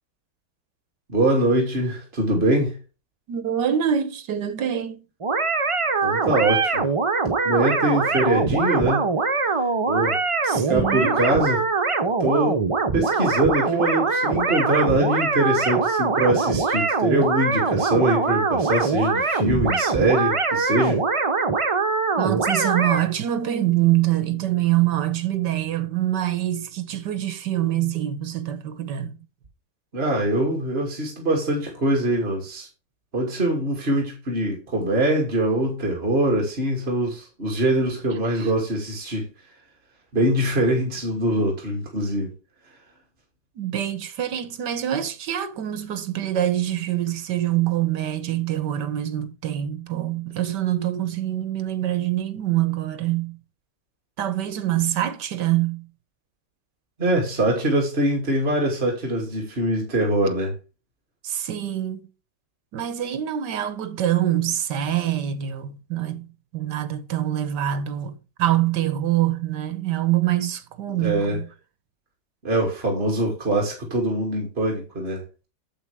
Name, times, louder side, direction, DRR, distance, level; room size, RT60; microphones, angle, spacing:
voice 1, 1.1-2.8 6.0-6.9 7.4-9.1 9.9-10.2 10.5-11.6 12.2-12.6 12.9-21.0 29.9-32.7 33.1-39.3 40.1-42.3 57.0-60.5 70.9-71.4 72.4-75.2, right 1 dB, 35° right, 2.9 m, -23 dB
voice 2, 3.3-5.1 10.4-11.2 22.2-29.2 38.3-38.5 43.6-53.4 54.2-55.9 61.2-62.1 62.7-66.3 66.5-71.5 73.1-73.3, right 12 dB, 75° right, 1.6 m, -25 dB
sound 1, 5.2-23.0, right 4 dB, 55° right, 0.3 m, -23 dB
8.8 x 7.6 x 3.5 m
omnidirectional pair, 1.9 m